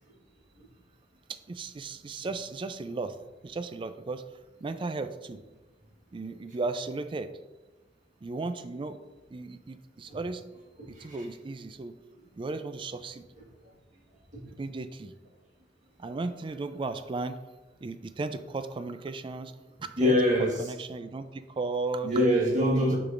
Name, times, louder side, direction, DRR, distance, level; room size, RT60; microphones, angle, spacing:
voice 1, 1.3-3.2 3.4-4.2 4.6-5.4 6.1-7.3 8.2-9.0 9.3-10.4 10.9-12.0 12.4-13.2 14.5-15.1 16.0-17.4 17.8-19.5 19.8-20.2 20.6-22.1 22.7-23.0, right 3 dB, 30° right, 10 dB, 0.3 m, -35 dB
voice 2, 20.0-20.6 22.0-23.0, equal, 45° right, -2 dB, 1.4 m, -24 dB
6.3 x 5.9 x 2.5 m, 1.1 s
head